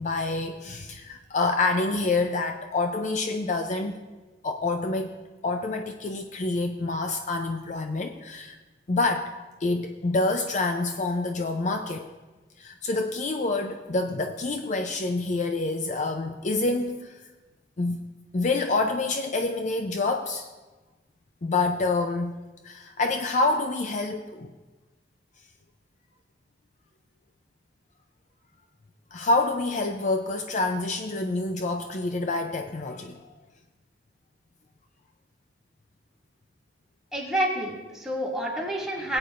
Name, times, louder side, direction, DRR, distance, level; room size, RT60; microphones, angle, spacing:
voice 1, 0.0-4.0 4.4-5.2 5.4-8.6 8.9-9.3 9.6-12.1 12.6-17.2 17.8-18.0 18.3-20.5 21.4-22.3 22.6-24.5 29.1-33.2, left 3 dB, 45° left, 6 dB, 0.5 m, -27 dB
voice 2, 37.1-39.2, right 1 dB, 5° right, -5 dB, 2.3 m, -28 dB
18.0 x 8.6 x 2.5 m, 1.2 s
head